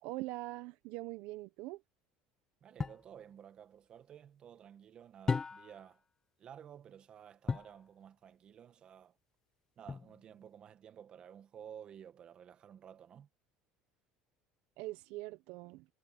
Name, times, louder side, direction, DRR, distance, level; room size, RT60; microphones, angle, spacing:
voice 1, 0.0-1.8 14.8-15.8, right 20 dB, 70° right, 0.8 m, -43 dB
voice 2, 2.6-6.0 6.4-9.1 9.8-13.3, right 9 dB, 35° right, 1.6 m, -53 dB
sound 1, 2.8-3.1 5.3-5.9 7.5-7.8 9.9-10.4, left 5 dB, 20° left, 0.6 m, -36 dB
cardioid pair, 130°, 3 cm